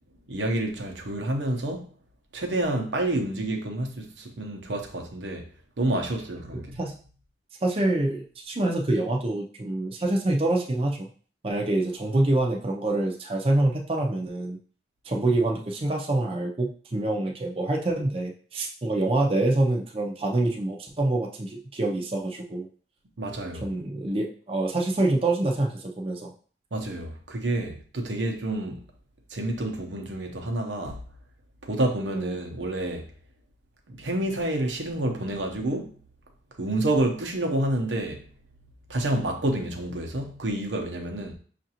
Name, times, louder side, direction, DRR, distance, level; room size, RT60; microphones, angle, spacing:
voice 1, 0.3-1.9 2.3-5.5 5.8-6.8 23.2-23.6 26.7-28.8 29.3-31.0 31.6-33.1 33.9-35.9 36.6-38.2 38.9-41.3, right 1 dB, 85° right, 0.8 m, -28 dB
voice 2, 7.6-11.1 11.4-14.6 15.0-22.7 23.6-26.3 32.1-32.3, right 2 dB, 30° right, 0.5 m, -26 dB
5.7 x 2.5 x 2.8 m
head